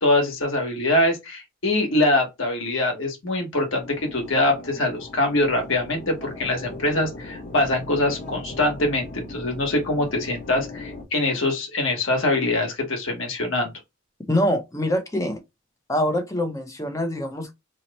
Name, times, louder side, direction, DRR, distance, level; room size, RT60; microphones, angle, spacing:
voice 1, 0.0-13.7, left 2 dB, 60° left, 1.2 m, -23 dB
sound 1, 3.8-11.0, left 2 dB, 35° left, 0.8 m, -39 dB
voice 2, 14.2-15.4 15.9-17.5, left 1 dB, 15° left, 0.5 m, -24 dB
2.9 x 2.0 x 4.0 m
head